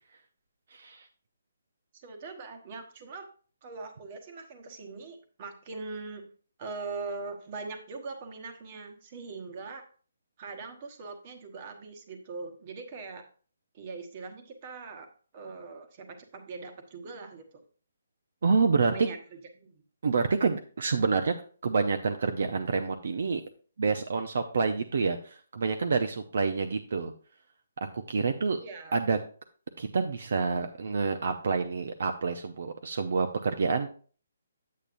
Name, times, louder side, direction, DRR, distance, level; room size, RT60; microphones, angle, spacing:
voice 1, 0.7-1.1 18.4-18.9 20.0-21.3 21.6-23.4 23.8-27.1 27.8-28.6 28.9-29.2 29.8-33.9, right 4 dB, 60° right, 6 dB, 0.7 m, -28 dB
voice 2, 1.9-3.3 3.6-6.3 6.6-9.8 10.4-13.2 13.7-15.1 15.3-17.4 18.8-19.8 28.5-29.0, right 4 dB, 30° right, 5 dB, 1.1 m, -41 dB
8.8 x 8.5 x 2.6 m, 0.41 s
hypercardioid pair, 170°, 0 cm